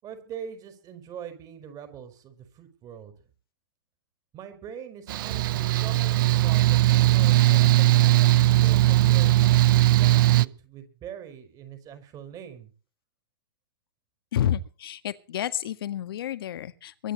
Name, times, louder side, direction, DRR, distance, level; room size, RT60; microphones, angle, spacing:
voice 1, 0.0-3.1 4.3-9.5 9.9-12.7, right 8 dB, 30° right, 5.1 m, -43 dB
Mechanical fan, 5.1-10.4, right 16 dB, 55° right, 0.7 m, -19 dB
voice 2, 14.3-17.1, left 10 dB, 65° left, 1.7 m, -30 dB
23.5 x 10.5 x 4.1 m
hypercardioid pair, 120°, 13 cm